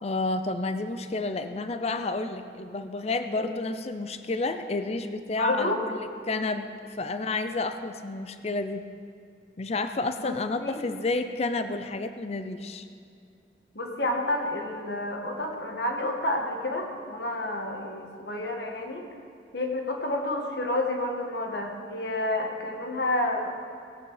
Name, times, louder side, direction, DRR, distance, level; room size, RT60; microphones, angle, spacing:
voice 1, 0.0-6.0 6.3-6.7 7.0-8.8 9.6-12.8, left 3 dB, 35° left, 9 dB, 0.5 m, -30 dB
voice 2, 5.4-5.8 10.2-10.8 13.7-19.0 19.5-23.6, left 1 dB, 70° left, 1 dB, 1.8 m, -30 dB
18.5 x 8.5 x 5.0 m, 2.4 s
head